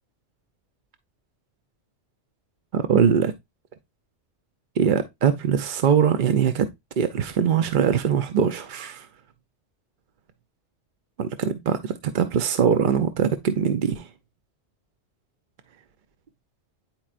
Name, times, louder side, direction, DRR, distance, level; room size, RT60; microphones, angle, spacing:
voice 1, 2.7-3.3 4.8-6.7 7.0-9.1 11.2-14.0, right 7 dB, 55° right, 0.6 m, -22 dB
9.6 x 4.3 x 2.4 m
omnidirectional pair, 1.2 m